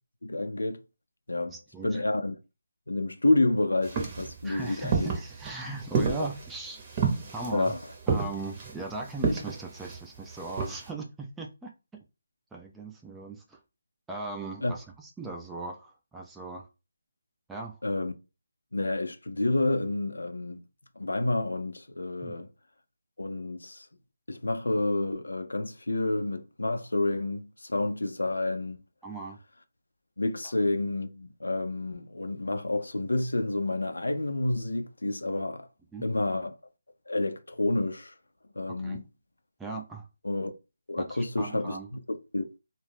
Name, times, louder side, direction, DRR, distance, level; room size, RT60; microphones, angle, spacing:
voice 1, 0.2-0.8 1.3-1.6 1.8-2.4 2.9-5.1 7.5-7.8 14.6-14.7 17.8-18.1 18.7-20.6 21.0-22.5 23.2-23.9 24.3-28.8 30.2-35.7 36.0-36.5 37.1-38.1 38.6-39.1 40.2-40.5 40.9-41.8 42.1-42.5, left 2 dB, 90° left, 0.4 m, -29 dB
voice 2, 1.5-2.0 4.4-6.8 7.3-7.7 8.1-11.7 12.5-13.6 14.1-16.7 17.5-17.8 22.2-22.3 29.0-29.4 35.9-36.1 38.8-39.0 39.6-40.1 41.1-41.9, right 3 dB, 5° right, 0.4 m, -38 dB
Footsteps Cowboy Boots Hardwood Floor, 3.8-10.9, right 5 dB, 25° right, 0.7 m, -31 dB
2.3 x 2.0 x 3.2 m
figure-of-eight pair, 160°, 0 cm